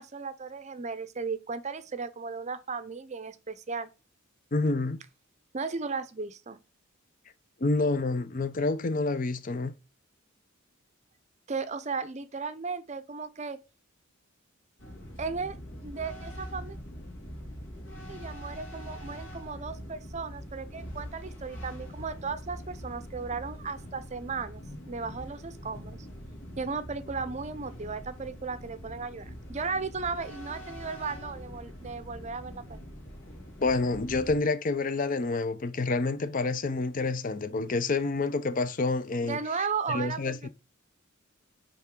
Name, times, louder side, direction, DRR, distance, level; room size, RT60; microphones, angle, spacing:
voice 1, 0.0-3.9 5.5-6.6 11.5-13.6 15.2-15.6 15.8-16.8 18.1-24.6 24.9-26.1 26.6-32.8 39.2-40.5, right 5 dB, 35° right, 0.6 m, -35 dB
voice 2, 4.5-5.0 7.6-9.7 33.6-39.4 39.9-40.5, left 3 dB, 40° left, 0.6 m, -28 dB
sound 1, 14.8-34.4, equal, 70° left, 2.4 m, -43 dB
10.0 x 3.6 x 3.7 m
head